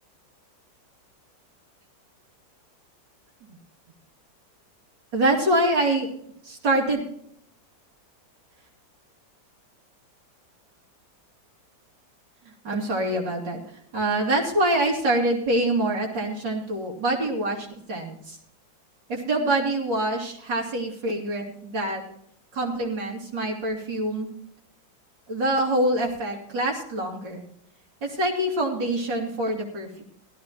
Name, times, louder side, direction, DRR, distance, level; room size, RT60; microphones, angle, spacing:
voice 1, 5.1-6.1 6.4-7.1 12.6-13.6 13.9-18.4 19.1-22.0 22.5-24.3 25.3-27.5 28.0-30.0, right 1 dB, 70° right, 0 dB, 3.2 m, -25 dB
16.5 x 12.5 x 3.0 m, 0.70 s
omnidirectional pair, 2.0 m